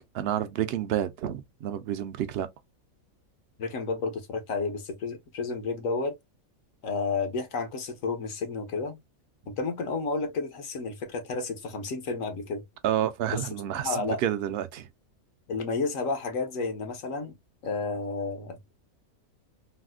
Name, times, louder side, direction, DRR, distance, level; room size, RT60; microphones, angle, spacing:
voice 1, 0.1-2.5 12.8-14.9, right 11 dB, 65° right, 0.6 m, -29 dB
voice 2, 3.6-6.1 6.8-9.0 9.5-12.6 13.3-13.5 13.7-14.2 15.5-17.4 17.6-18.6, left 4 dB, 75° left, 1.2 m, -31 dB
4.0 x 2.1 x 2.3 m
omnidirectional pair, 1.4 m